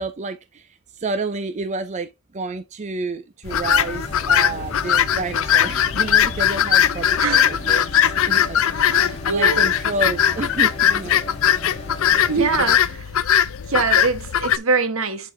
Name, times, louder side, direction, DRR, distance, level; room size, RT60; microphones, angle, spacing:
voice 1, 0.0-7.8 8.3-11.2 12.4-12.5, right 3 dB, 35° right, 0.5 m, -30 dB
sound 1, 3.5-14.6, left 10 dB, 65° left, 0.4 m, -20 dB
sound 2, 3.5-12.8, left 1 dB, 30° left, 2.5 m, -37 dB
voice 2, 7.2-7.6 8.8-9.7 12.3-13.2 13.7-15.3, right 4 dB, 65° right, 1.3 m, -24 dB
11.0 x 4.1 x 2.6 m
head